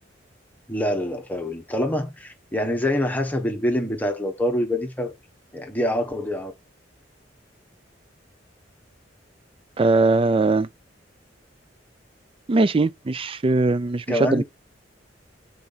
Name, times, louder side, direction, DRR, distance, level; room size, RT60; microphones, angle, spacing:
voice 1, 0.7-5.1 5.5-6.5 14.1-14.4, left 1 dB, 10° left, 1.2 m, -25 dB
voice 2, 9.8-10.7 12.5-14.4, right 3 dB, 30° right, 0.4 m, -20 dB
6.1 x 4.0 x 5.5 m
head